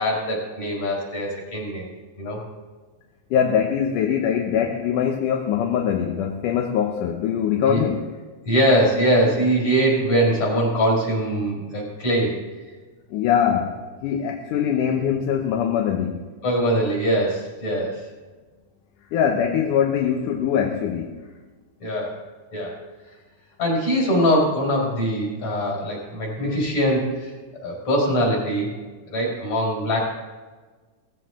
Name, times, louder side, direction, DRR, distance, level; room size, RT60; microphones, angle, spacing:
voice 1, 0.0-1.9 2.2-2.4 7.7-7.8 8.4-12.4 16.4-18.1 21.8-22.2 22.5-22.8 23.6-27.3 27.6-28.7 29.1-30.0, equal, 55° left, -2 dB, 6.1 m, -22 dB
voice 2, 3.3-8.0 13.1-13.8 14.0-16.2 19.1-21.1, left 8 dB, 85° left, 3 dB, 2.5 m, -22 dB
17.5 x 15.0 x 3.7 m, 1.4 s
omnidirectional pair, 3.6 m